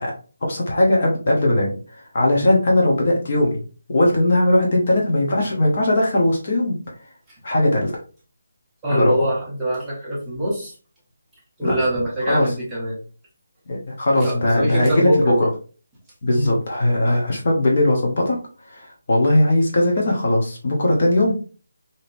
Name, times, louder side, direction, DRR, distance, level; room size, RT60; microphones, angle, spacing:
voice 1, 0.4-3.6 3.9-6.8 7.4-7.9 8.9-9.3 11.6-11.8 12.3-12.5 13.7-15.5 16.2-18.4 18.6-21.3, left 1 dB, 35° left, -2 dB, 0.7 m, -19 dB
voice 2, 8.8-10.7 11.6-13.0 14.2-15.5 16.3-16.6, equal, 5° right, -9 dB, 0.8 m, -23 dB
3.3 x 2.7 x 2.5 m, 0.38 s
hypercardioid pair, 180°, 0 cm